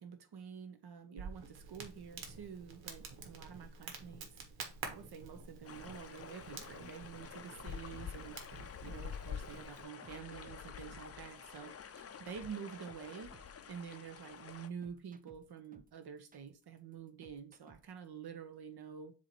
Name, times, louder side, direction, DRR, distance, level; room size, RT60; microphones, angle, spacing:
voice 1, 0.0-4.4 4.8-13.3 13.7-19.1, right 7 dB, 55° right, 1.2 m, -48 dB
Crackle, 1.2-9.8, right 4 dB, 85° right, 1.6 m, -49 dB
sound 1, 5.6-14.7, left 7 dB, 35° left, 0.6 m, -48 dB
sound 2, 8.5-18.1, right 5 dB, 20° right, 0.5 m, -62 dB
7.3 x 2.9 x 4.6 m
cardioid pair, 110°, 45 cm